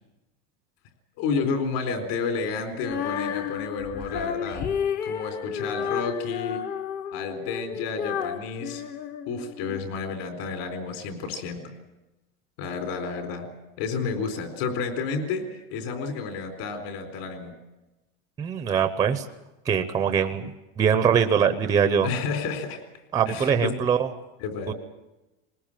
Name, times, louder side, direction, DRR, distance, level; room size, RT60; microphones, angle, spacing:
voice 1, 1.2-4.7 5.0-6.6 7.1-8.8 9.3-11.7 12.6-13.5 13.8-17.5 22.0-22.8 23.3-23.8 24.4-24.7, left 5 dB, 55° left, 6 dB, 4.2 m, -31 dB
Female singing, 2.8-9.9, left 8 dB, 25° left, 0.8 m, -31 dB
voice 2, 18.4-19.2 19.7-22.1 23.1-24.1 24.7-24.8, right 7 dB, 10° right, 9 dB, 0.7 m, -23 dB
20.0 x 20.0 x 8.9 m, 1.0 s
supercardioid pair, 180°, 34 cm